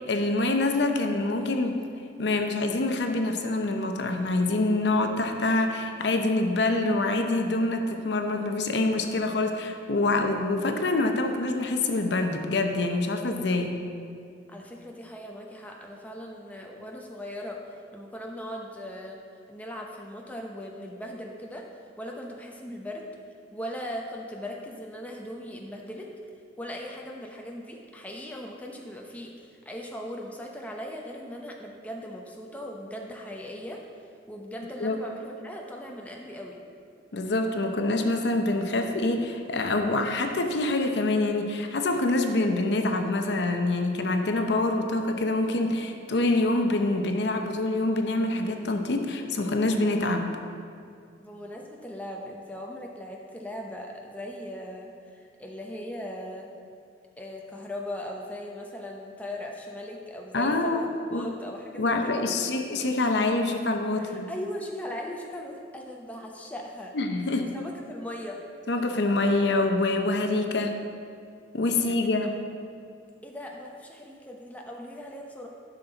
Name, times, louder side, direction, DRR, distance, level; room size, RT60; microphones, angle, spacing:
voice 1, 0.0-1.8 2.2-13.8 34.8-35.0 37.1-50.3 60.3-61.2 61.8-64.3 66.9-67.5 68.7-70.7 71.5-72.3, left 2 dB, 65° left, 5 dB, 0.7 m, -26 dB
voice 2, 14.5-17.6 17.9-19.2 19.5-21.7 22.0-23.1 23.5-26.1 26.6-33.8 34.3-36.6 51.2-56.5 57.2-62.2 64.0-66.9 67.4-68.4 72.0-72.1 73.2-75.5, left 1 dB, 10° left, 0 dB, 0.6 m, -39 dB
11.5 x 5.8 x 4.0 m, 2.3 s
head